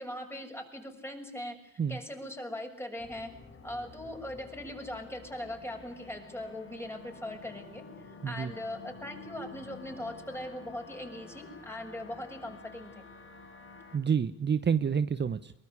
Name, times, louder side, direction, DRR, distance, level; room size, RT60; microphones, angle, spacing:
voice 1, 0.0-3.3 3.6-12.9, left 1 dB, 10° left, 4 dB, 6.7 m, -40 dB
sound 1, 3.0-14.0, left 3 dB, 45° left, 5.4 m, -50 dB
voice 2, 13.9-15.5, right 7 dB, 35° right, 13 dB, 0.9 m, -28 dB
23.5 x 20.0 x 9.8 m, 0.68 s
cardioid pair, 90°, 30 cm